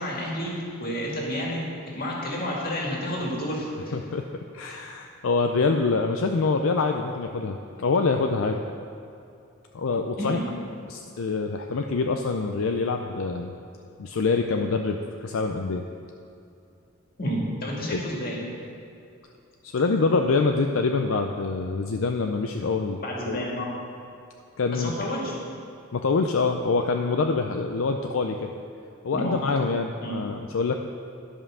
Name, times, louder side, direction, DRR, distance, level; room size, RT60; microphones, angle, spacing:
voice 1, 0.0-1.6 1.9-4.0 10.2-10.4 17.2-18.4 23.0-23.7 24.7-25.4 29.1-29.4 30.0-30.2, equal, 45° left, -3 dB, 2.0 m, -30 dB
voice 2, 3.9-4.2 4.5-8.6 9.7-10.4 10.9-13.5 14.0-15.8 17.9-18.0 19.6-23.0 23.3-23.4 24.6-24.9 25.9-28.5 29.0-30.7, left 4 dB, 70° left, 4 dB, 0.5 m, -25 dB
11.5 x 5.5 x 6.2 m, 2.6 s
head